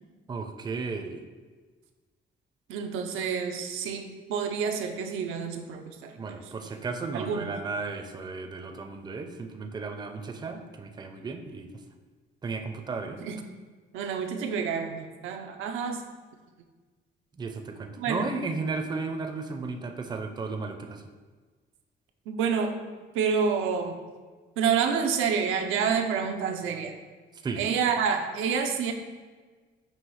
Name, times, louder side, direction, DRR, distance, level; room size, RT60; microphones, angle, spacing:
voice 1, 0.3-1.2 6.2-11.7 12.4-13.2 17.4-21.0 27.4-27.6, right 4 dB, 20° right, 5 dB, 0.4 m, -34 dB
voice 2, 2.7-6.4 7.1-7.5 13.2-13.4 13.9-16.0 18.0-18.3 22.3-22.8 23.1-24.0 24.6-27.0 27.6-28.9, right 6 dB, 90° right, 4 dB, 0.5 m, -28 dB
5.5 x 2.7 x 3.0 m, 1.4 s
cardioid pair, 90°, 20 cm